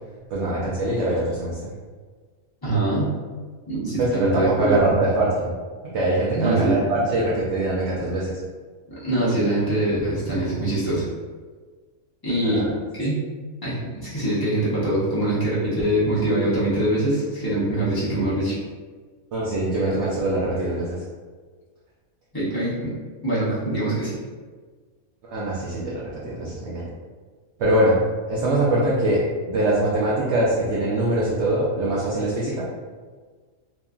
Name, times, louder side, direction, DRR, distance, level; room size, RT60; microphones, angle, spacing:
voice 1, 0.3-1.7 4.0-5.5 5.9-8.4 12.4-12.7 19.3-21.0 25.3-26.8 27.6-28.0 28.3-32.6, right 1 dB, 65° right, -6 dB, 0.7 m, -23 dB
voice 2, 2.6-3.1 3.7-4.8 6.3-7.0 8.9-11.1 12.2-12.6 12.9-13.1 13.6-18.6 19.9-20.0 22.3-22.9 23.2-24.1, right 1 dB, 35° left, -10 dB, 0.3 m, -23 dB
2.7 x 2.4 x 2.2 m, 1.5 s
omnidirectional pair, 1.5 m